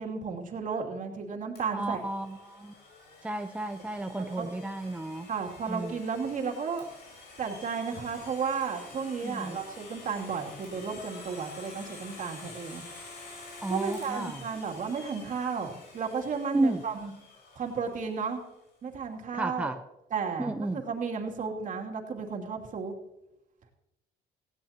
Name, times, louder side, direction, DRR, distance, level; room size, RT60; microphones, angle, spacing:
voice 1, 0.0-2.0 4.2-4.5 5.3-6.9 7.4-12.8 13.7-17.1 17.6-18.4 18.8-19.7 20.1-22.9, right 5 dB, 50° right, 1 dB, 2.8 m, -33 dB
Domestic sounds home sounds, 1.6-18.3, left 3 dB, 75° left, 6.3 m, -49 dB
voice 2, 1.7-2.7 3.2-5.3 5.7-5.9 9.2-9.6 13.6-14.4 16.5-16.8 19.3-19.8 20.4-20.8, right 2 dB, 10° right, 6 dB, 0.6 m, -32 dB
18.0 x 16.5 x 2.9 m, 0.92 s
cardioid pair, 110°, 17 cm